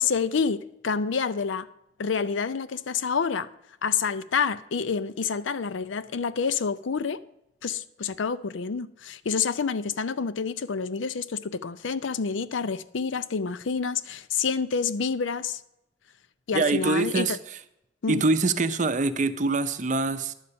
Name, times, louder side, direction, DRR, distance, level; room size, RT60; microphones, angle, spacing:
voice 1, 0.0-1.7 2.0-3.5 3.8-7.2 7.6-15.6 16.5-17.4 18.0-18.2, left 5 dB, 85° left, 0.5 m, -28 dB
voice 2, 16.5-17.6 18.1-20.3, right 3 dB, 40° right, 0.6 m, -24 dB
11.0 x 5.4 x 8.5 m
head